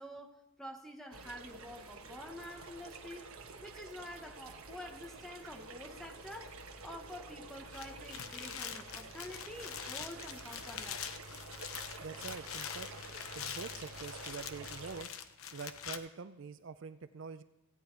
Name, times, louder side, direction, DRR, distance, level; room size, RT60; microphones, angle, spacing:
voice 1, 0.0-3.3 3.6-11.2, equal, ahead, 3 dB, 1.0 m, -48 dB
sound 1, 1.1-15.0, right 3 dB, 85° right, 1.2 m, -49 dB
sound 2, 7.7-16.0, left 8 dB, 85° left, 0.8 m, -44 dB
voice 2, 12.0-12.9 13.3-15.1 15.5-17.4, right 5 dB, 65° right, 12 dB, 0.5 m, -45 dB
16.0 x 9.1 x 4.5 m, 1.0 s
head